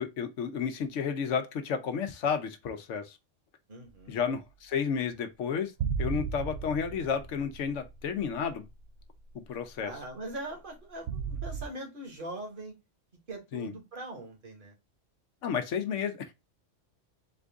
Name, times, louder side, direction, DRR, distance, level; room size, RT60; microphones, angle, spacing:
voice 1, 0.0-3.2 4.1-5.7 6.0-8.7 9.3-9.9 13.5-13.7 15.4-16.3, left 6 dB, 75° left, 1.0 m, -32 dB
voice 2, 3.7-4.2 9.8-12.7 13.3-14.7, right 2 dB, 45° right, 1.5 m, -41 dB
sound 1, 5.8-8.6 9.0-9.1 11.1-11.7, right 6 dB, 65° right, 0.7 m, -34 dB
4.4 x 2.5 x 3.4 m
omnidirectional pair, 1.3 m